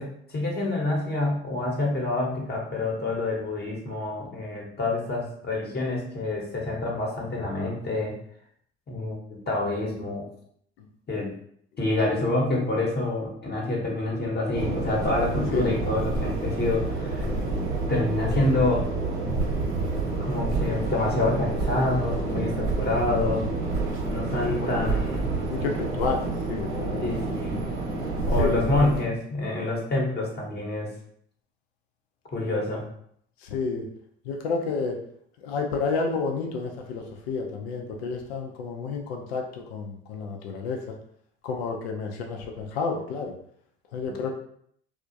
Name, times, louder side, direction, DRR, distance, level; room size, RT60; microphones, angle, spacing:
voice 1, 0.0-8.1 8.9-10.3 11.1-11.3 11.8-17.2 17.9-18.9 20.2-23.5 24.1-25.3 27.0-27.6 28.3-30.9 32.3-32.8 44.1-44.2, left 2 dB, 30° left, -2 dB, 0.9 m, -27 dB
sound 1, 14.5-29.0, right 3 dB, 65° right, 0.9 m, -28 dB
voice 2, 25.5-27.1 28.4-28.6 33.4-33.9 34.3-35.0 35.4-40.9 41.4-43.3 43.9-44.3, left 4 dB, 85° left, 2 dB, 0.5 m, -30 dB
2.4 x 2.1 x 2.6 m, 0.65 s
hypercardioid pair, 60°, 31 cm